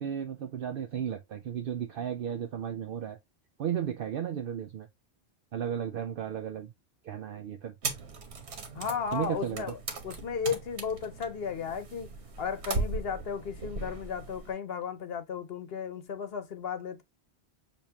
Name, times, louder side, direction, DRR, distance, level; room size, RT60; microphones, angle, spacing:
voice 1, 0.0-3.2 3.6-4.9 5.5-6.7 7.0-7.7 9.1-9.7, right 9 dB, 65° right, 0.7 m, -34 dB
sound 1, 7.8-14.5, right 3 dB, 85° right, 1.3 m, -38 dB
voice 2, 8.7-9.8 10.0-12.1 12.4-17.0, left 6 dB, 65° left, 1.0 m, -34 dB
6.8 x 2.6 x 2.8 m
omnidirectional pair, 1.1 m